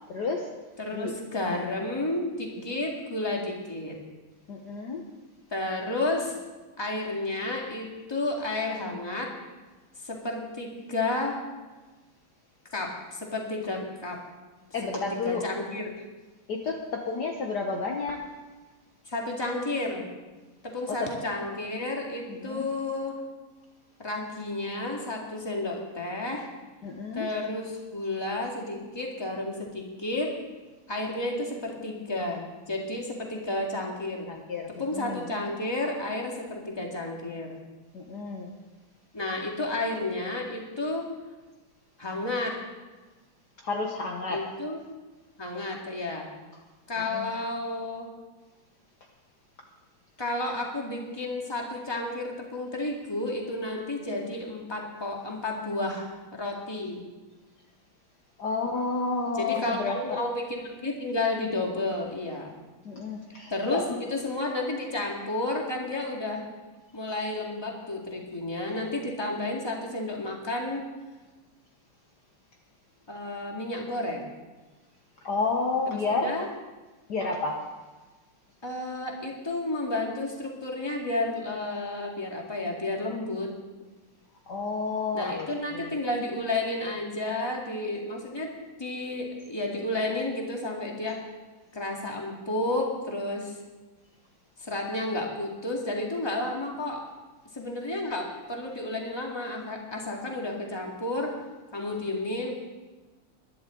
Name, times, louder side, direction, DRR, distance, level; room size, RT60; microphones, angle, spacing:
voice 1, 0.1-0.5 0.9-1.1 4.5-5.0 14.7-15.4 16.5-18.2 20.9-21.1 22.3-22.7 26.8-27.3 34.3-35.2 37.9-38.5 43.6-44.4 47.0-47.3 58.4-60.2 62.8-64.0 75.2-76.4 77.1-77.7 84.5-85.9, left 4 dB, 55° left, 1 dB, 1.5 m, -31 dB
voice 2, 0.8-4.0 5.5-6.4 6.8-9.3 10.0-11.4 12.7-14.2 14.9-15.9 19.1-20.0 20.7-23.2 24.0-26.5 27.1-30.3 30.9-34.3 34.8-37.6 39.1-41.1 42.0-42.6 44.3-44.8 45.4-46.3 46.9-48.1 50.2-57.0 59.4-62.5 63.5-63.8 64.1-66.4 66.9-70.8 73.1-74.2 75.9-76.5 78.6-83.5 85.1-88.5 88.8-91.2 91.7-93.6 94.6-97.0 97.5-101.3 101.7-102.5, left 2 dB, 10° left, -1 dB, 2.0 m, -31 dB
21.5 x 11.0 x 3.8 m, 1.2 s
omnidirectional pair, 2.4 m